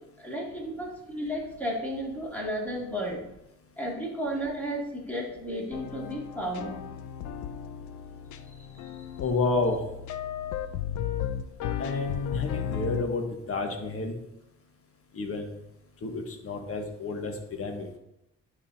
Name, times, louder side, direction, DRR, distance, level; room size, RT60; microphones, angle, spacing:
voice 1, 0.2-3.2 3.8-6.8 8.5-9.1, equal, 5° left, -3 dB, 2.4 m, -33 dB
sound 1, 5.7-13.0, left 9 dB, 75° left, 0.6 m, -35 dB
voice 2, 9.2-9.8 11.8-14.2 15.1-15.5 16.0-18.0, left 3 dB, 50° left, 4 dB, 1.4 m, -30 dB
10.5 x 4.8 x 2.8 m, 0.83 s
cardioid pair, 90°, 30 cm